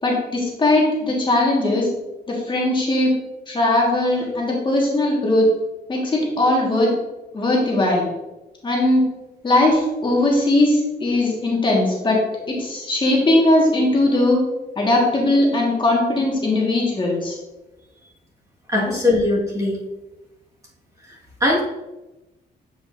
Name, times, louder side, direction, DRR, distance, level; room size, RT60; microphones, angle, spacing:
voice 1, 0.0-1.9 2.3-3.1 3.5-5.4 5.9-6.9 7.3-8.1 8.6-9.0 9.4-12.2 12.5-14.4 14.8-17.4 18.7-18.9, left 2 dB, 30° left, -2 dB, 1.5 m, -19 dB
voice 2, 18.7-19.8 21.4-21.6, left 2 dB, 20° right, -4 dB, 1.5 m, -20 dB
8.2 x 5.0 x 2.5 m, 1.0 s
cardioid pair, 125°, 17 cm